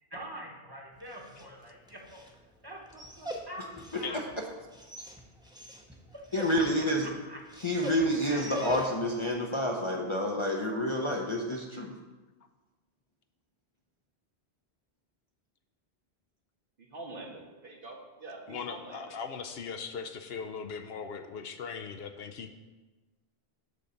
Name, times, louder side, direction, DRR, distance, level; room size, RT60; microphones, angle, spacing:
voice 1, 0.1-2.2 2.6-4.2 6.1-7.4 8.2-8.9, right 1 dB, 20° right, 0 dB, 1.1 m, -45 dB
Dog, 0.9-9.2, equal, 5° right, 0.7 m, -44 dB
voice 2, 6.3-7.1 7.6-11.9, equal, 30° left, 0 dB, 0.7 m, -29 dB
voice 3, 16.8-19.2, right 2 dB, 55° right, 0 dB, 1.4 m, -45 dB
voice 4, 18.5-22.5, left 6 dB, 70° left, 6 dB, 0.8 m, -39 dB
8.4 x 3.9 x 7.0 m, 1.2 s
omnidirectional pair, 1.1 m